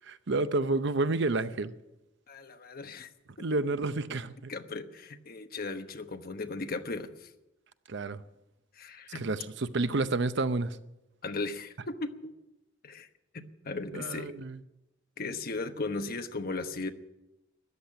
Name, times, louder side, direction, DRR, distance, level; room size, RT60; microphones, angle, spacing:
voice 1, 0.1-1.7 3.4-4.5 7.9-8.2 9.1-10.8 13.9-14.6, right 3 dB, 65° right, 0.7 m, -30 dB
voice 2, 2.3-3.1 3.4-3.5 4.5-7.3 8.7-9.3 9.7-9.9 11.2-12.3 12.8-13.1 13.3-14.3 15.2-16.9, left 3 dB, 50° left, 1.1 m, -37 dB
14.0 x 10.0 x 8.8 m
head